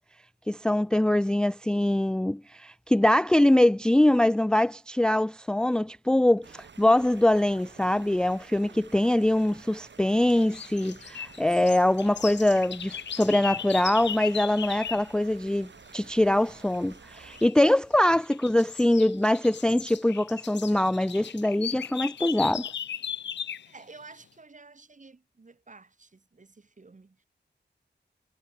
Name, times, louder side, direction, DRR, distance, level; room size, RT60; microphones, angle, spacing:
voice 1, 0.5-22.7, left 1 dB, 5° left, 0.3 m, -23 dB
sound 1, 6.4-17.5, right 5 dB, 80° right, 7.8 m, -51 dB
sound 2, 10.3-15.1 17.3-17.7 18.1-23.7, left 8 dB, 80° left, 0.5 m, -37 dB
voice 2, 23.6-27.2, right 3 dB, 45° right, 6.5 m, -51 dB
wide cardioid pair, 110°, 18 cm